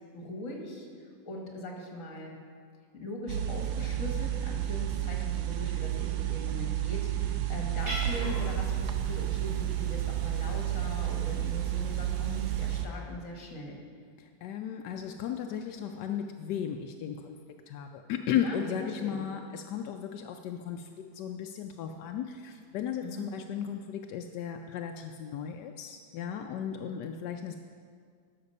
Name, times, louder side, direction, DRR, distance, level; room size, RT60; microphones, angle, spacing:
voice 1, 0.1-0.9 1.3-2.3 2.9-13.8 18.4-18.6 19.0-19.2 23.0-23.3, left 1 dB, 50° left, 0 dB, 1.9 m, -40 dB
sound 1, 3.3-12.9, right 13 dB, 85° right, 1.2 m, -31 dB
Cat, 7.8-12.8, right 1 dB, 55° right, 2.7 m, -42 dB
voice 2, 14.2-17.4 17.7-27.6, left 8 dB, 85° left, 4 dB, 1.2 m, -35 dB
12.0 x 6.7 x 5.4 m, 2.1 s
omnidirectional pair, 1.8 m